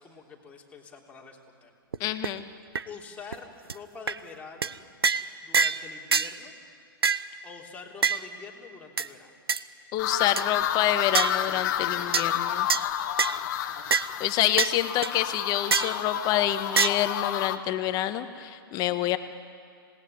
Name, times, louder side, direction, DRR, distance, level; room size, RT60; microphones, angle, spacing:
voice 1, 0.0-1.7 2.8-4.7 5.4-6.5 7.4-9.3, left 5 dB, 10° left, -2 dB, 3.3 m, -45 dB
sound 1, 1.9-2.0 2.2-2.3 2.8-2.9 3.3-3.4 3.7-3.8 4.1-4.2 4.6-4.7 5.0-5.3 5.5-5.8 6.1-6.3 7.0-7.3 8.0-8.2 9.0-9.1 9.5-9.6 10.1-10.4 11.1-11.4 12.1-12.3 12.7-12.8 13.2-13.4 13.9-14.1 14.6-14.7 15.0-15.1 15.7-16.0 16.8-16.9, right 5 dB, 80° right, 0.8 m, -24 dB
voice 2, 2.0-2.5 9.9-12.7 14.2-19.2, left 12 dB, 30° left, 10 dB, 1.4 m, -27 dB
sound 2, 10.0-17.6, left 11 dB, 50° left, 1.5 m, -30 dB
26.5 x 18.5 x 9.5 m, 2.3 s
hypercardioid pair, 115°, 12 cm